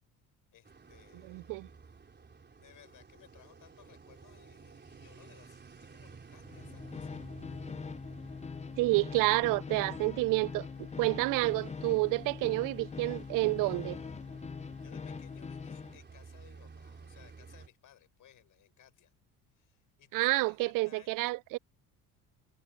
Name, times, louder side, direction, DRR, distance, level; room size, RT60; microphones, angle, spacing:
voice 1, 0.5-1.5 2.5-7.3 14.8-19.1 19.5-21.3, left 11 dB, 55° left, 4.8 m, -60 dB
sound 1, 0.6-17.7, right 5 dB, 30° right, 3.8 m, -54 dB
voice 2, 1.2-1.7 8.8-10.7 11.0-14.0 20.1-21.6, right 22 dB, 60° right, 0.5 m, -29 dB
sound 2, 6.4-16.0, left 5 dB, 20° left, 0.7 m, -42 dB
supercardioid pair, 80°, 37 cm